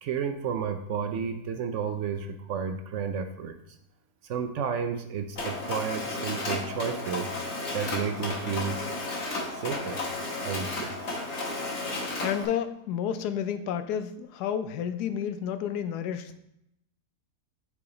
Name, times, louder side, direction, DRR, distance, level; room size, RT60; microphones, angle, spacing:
voice 1, 0.0-3.6 4.2-7.3 7.7-8.8 9.6-10.0 10.4-11.0, right 7 dB, 65° right, 8 dB, 0.8 m, -32 dB
Mechanisms, 5.4-12.5, left 2 dB, 45° left, 1.4 m, -33 dB
voice 2, 12.2-16.4, left 9 dB, 85° left, 10 dB, 1.1 m, -31 dB
6.9 x 4.9 x 3.9 m, 0.80 s
omnidirectional pair, 1.7 m